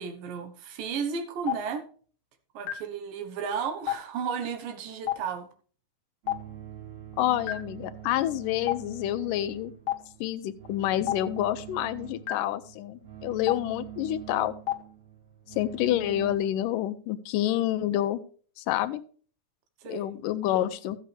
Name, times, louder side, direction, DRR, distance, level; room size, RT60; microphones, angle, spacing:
voice 1, 0.0-1.9 2.5-5.5 19.8-20.0, right 6 dB, 90° right, 7 dB, 2.8 m, -33 dB
Stream, 1.4-1.6 2.7-2.8 3.8-4.0 5.0-5.2 6.2-6.4 7.5-7.6 8.6-8.8 9.8-10.0 11.0-11.2 12.3-12.4 13.4-13.6 14.6-14.8, left 14 dB, 60° left, 1.5 m, -28 dB
sound 1, 6.2-16.4, right 11 dB, 55° right, 4.7 m, -44 dB
voice 2, 7.2-9.7 10.2-14.5 15.5-18.2 18.6-19.0 19.9-21.0, left 13 dB, 85° left, 12 dB, 2.2 m, -28 dB
13.5 x 8.2 x 3.3 m, 0.43 s
omnidirectional pair, 3.8 m